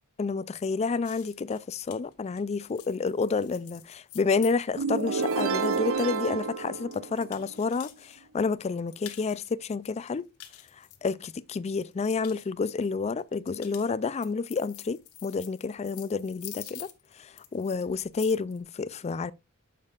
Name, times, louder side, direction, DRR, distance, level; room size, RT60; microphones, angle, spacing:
voice 1, 0.2-10.3 11.0-16.9 17.2-19.3, left 4 dB, 30° left, 0.3 m, -29 dB
sound 1, 1.0-8.2 8.5-9.5 9.8-11.5 11.8-12.5 13.2-18.6, left 13 dB, 90° left, 1.1 m, -48 dB
sound 2, 4.8-7.6, right 5 dB, 65° right, 0.6 m, -29 dB
9.5 x 6.8 x 2.4 m
head